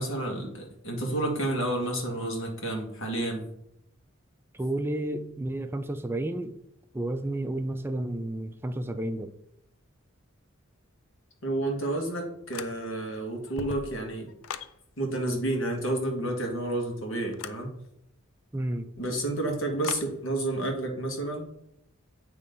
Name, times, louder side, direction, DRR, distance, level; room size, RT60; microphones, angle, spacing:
voice 1, 0.0-3.5 11.4-14.3 15.0-17.7 19.0-21.4, right 1 dB, 65° left, 1 dB, 1.8 m, -30 dB
voice 2, 4.5-6.6 6.9-9.3 18.5-18.9, right 1 dB, 10° right, 8 dB, 0.4 m, -31 dB
sound 1, 12.5-13.1 13.4-14.8 17.3-17.6 19.8-20.1, left 7 dB, 85° left, 0.4 m, -39 dB
8.4 x 3.2 x 5.2 m, 0.77 s
head